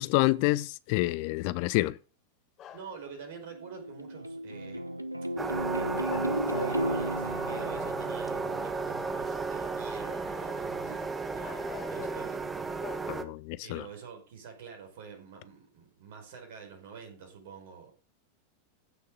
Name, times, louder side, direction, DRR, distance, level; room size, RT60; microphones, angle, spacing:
voice 1, 0.0-1.9 13.1-13.9, left 20 dB, 45° left, 0.5 m, -28 dB
sound 1, 2.6-3.1 4.9-5.0 6.0-7.0 7.6-8.2 10.7-10.8 11.4-12.4 12.8-13.0, left 9 dB, 30° left, 1.6 m, -45 dB
voice 2, 2.7-5.1 5.7-12.4 13.6-17.9, right 6 dB, 55° right, 5.1 m, -47 dB
sound 2, 3.5-8.9, right 1 dB, 85° right, 0.8 m, -34 dB
sound 3, 5.4-13.2, right 4 dB, 15° right, 1.4 m, -34 dB
15.0 x 6.7 x 3.9 m
figure-of-eight pair, 90°, 0 cm